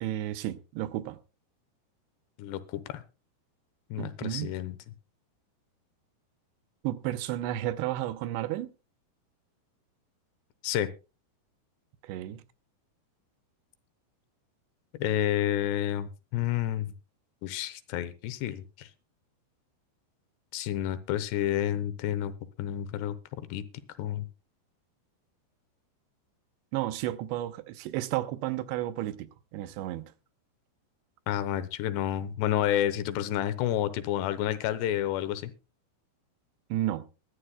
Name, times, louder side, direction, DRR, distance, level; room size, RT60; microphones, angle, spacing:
voice 1, 0.0-1.2 4.0-4.5 6.8-8.7 12.0-12.4 26.7-30.1 36.7-37.1, right 14 dB, 90° right, 3.0 m, -32 dB
voice 2, 2.4-3.0 3.9-4.8 10.6-10.9 15.0-16.9 17.4-18.9 20.5-22.3 22.6-23.6 24.0-24.3 31.3-35.5, left 11 dB, 85° left, 3.0 m, -30 dB
23.0 x 11.5 x 2.3 m
omnidirectional pair, 4.9 m